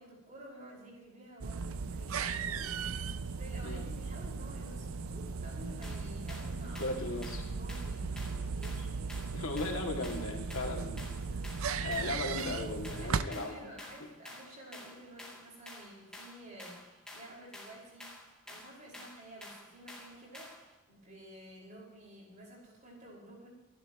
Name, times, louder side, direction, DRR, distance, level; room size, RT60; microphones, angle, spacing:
voice 1, 0.0-9.2 13.0-18.1 18.5-23.5, right 1 dB, 35° right, -4 dB, 6.0 m, -52 dB
sound 1, 1.4-13.2, right 5 dB, 90° right, 0.7 m, -37 dB
Basic Clap-Loop, 5.8-20.7, left 1 dB, 5° left, 3.0 m, -51 dB
voice 2, 6.8-7.4 9.3-11.1 11.8-13.7, left 2 dB, 85° left, 0 dB, 2.8 m, -37 dB
27.5 x 11.5 x 3.2 m, 1.1 s
head